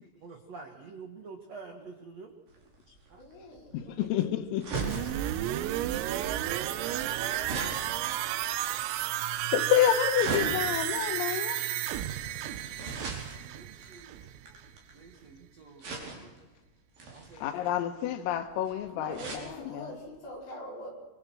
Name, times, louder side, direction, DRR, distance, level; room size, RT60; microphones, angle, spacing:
voice 1, 0.0-2.3 3.9-4.1 8.6-8.9 9.4-9.5 11.5-12.8 13.4-14.6 14.9-16.3 17.1-17.7, right 4 dB, 70° right, 1.6 m, -50 dB
sound 1, 2.5-15.1 15.8-16.4 16.9-19.5 20.0-20.1 20.3-20.4, right 3 dB, 45° right, 6.2 m, -40 dB
voice 2, 3.2-3.8 18.9-20.9, equal, 40° left, 6.0 m, -43 dB
voice 3, 3.7-4.7 6.9-7.2 8.0-8.1 9.5-11.6 17.4-19.9, left 11 dB, 85° left, 3.9 m, -29 dB
sound 2, 4.7-14.5 14.8-14.9, right 13 dB, 85° right, 3.7 m, -32 dB
25.0 x 24.0 x 6.3 m
omnidirectional pair, 6.0 m